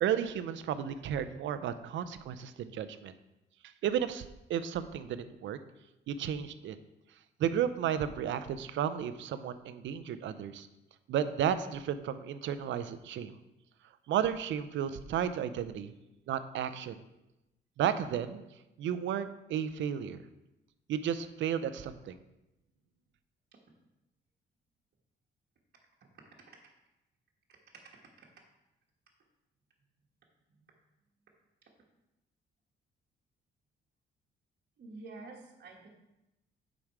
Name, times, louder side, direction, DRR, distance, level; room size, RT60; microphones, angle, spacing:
voice 1, 0.0-3.1 3.8-5.6 6.1-6.8 7.4-10.7 11.1-13.4 14.1-15.9 16.3-17.0 17.8-18.4 18.8-20.2 20.9-22.2, right 9 dB, 70° right, 12 dB, 0.6 m, -33 dB
voice 2, 34.8-35.9, right 3 dB, 55° right, -2 dB, 1.4 m, -48 dB
7.2 x 5.1 x 4.7 m, 0.95 s
cardioid pair, 90°, 20 cm